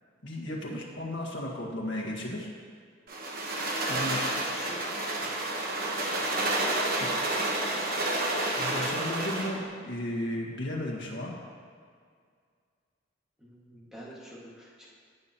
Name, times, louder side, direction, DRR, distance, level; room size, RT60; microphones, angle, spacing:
voice 1, 0.2-2.5 3.9-4.2 6.2-6.3 8.5-11.3, left 1 dB, 65° left, -2 dB, 1.8 m, -34 dB
sound 1, 3.1-9.6, right 2 dB, 50° right, 1.2 m, -30 dB
voice 2, 4.5-4.8 5.2-5.4 13.4-14.9, equal, 5° right, -7 dB, 1.9 m, -48 dB
17.0 x 6.9 x 3.0 m, 2.1 s
head